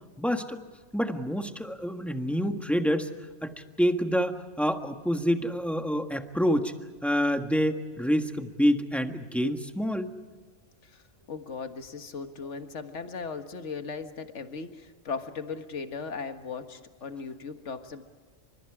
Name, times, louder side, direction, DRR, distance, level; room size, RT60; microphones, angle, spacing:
voice 1, 0.2-0.6 0.9-3.1 3.4-3.5 3.8-6.7 7.0-10.1, equal, ahead, 5 dB, 1.5 m, -27 dB
voice 2, 10.8-18.0, left 5 dB, 70° left, 7 dB, 1.8 m, -38 dB
29.5 x 26.5 x 4.9 m, 1.4 s
omnidirectional pair, 1.3 m